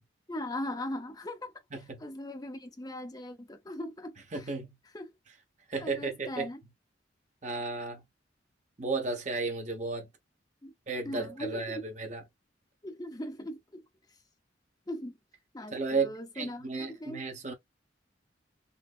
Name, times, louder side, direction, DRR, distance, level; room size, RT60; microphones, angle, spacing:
voice 1, 0.3-1.5 2.0-4.4 4.9-5.1 5.7-6.6 10.6-10.7 11.0-11.8 12.8-13.8 14.9-15.2 15.5-16.6 17.0-17.2, left 1 dB, 20° left, 0.6 m, -39 dB
voice 2, 1.7-2.0 4.3-4.7 5.7-6.5 7.4-8.0 8.8-10.1 10.9-12.2 15.7-17.5, right 4 dB, 40° right, 0.9 m, -33 dB
3.9 x 2.1 x 2.4 m
head